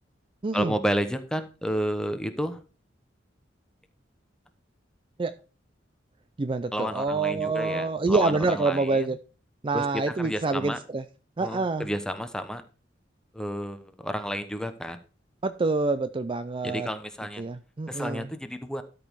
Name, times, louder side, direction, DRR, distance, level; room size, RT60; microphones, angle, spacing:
voice 1, 0.5-2.6 6.7-9.2 9.7-10.8 11.4-12.6 13.3-15.0 16.6-17.4 17.9-18.8, equal, 5° left, 8 dB, 1.0 m, -31 dB
voice 2, 6.4-9.2 9.6-11.0 11.4-11.9 15.4-16.9 17.4-18.3, right 3 dB, 30° right, 12 dB, 0.4 m, -26 dB
12.5 x 5.4 x 4.6 m, 0.35 s
head